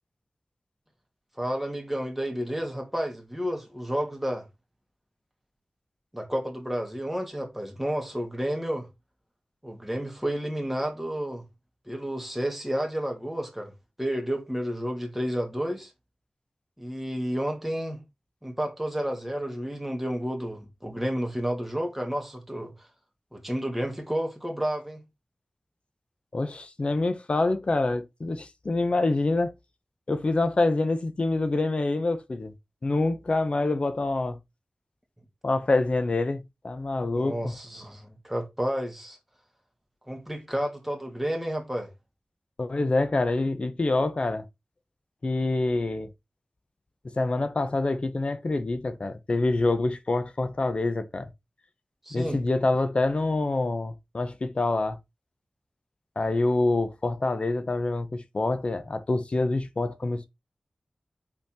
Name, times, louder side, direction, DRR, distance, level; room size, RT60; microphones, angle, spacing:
voice 1, 1.4-4.4 6.1-8.9 9.6-11.4 11.9-13.7 14.0-15.9 16.8-18.0 18.4-22.7 23.3-25.0 37.1-39.2 40.1-41.9 52.1-52.4, equal, 5° right, 2.5 m, -31 dB
voice 2, 26.3-29.5 30.1-32.5 32.8-34.4 35.4-37.5 42.6-44.4 45.2-46.1 47.1-51.3 52.1-55.0 56.2-60.3, left 2 dB, 50° left, 1.0 m, -26 dB
5.9 x 4.2 x 4.3 m
wide cardioid pair, 75°, 2 cm